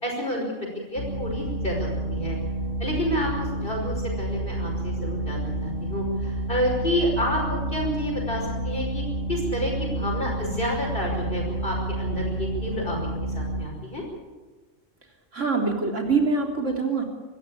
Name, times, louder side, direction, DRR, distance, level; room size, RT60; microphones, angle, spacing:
voice 1, 0.0-0.4 0.9-2.4 2.8-14.0, equal, 40° left, -1 dB, 5.6 m, -29 dB
sound 1, 1.0-13.6, right 1 dB, 75° left, 4.5 m, -30 dB
voice 2, 15.3-17.0, right 4 dB, 70° right, 2 dB, 3.8 m, -24 dB
25.0 x 15.0 x 8.4 m, 1.3 s
omnidirectional pair, 1.3 m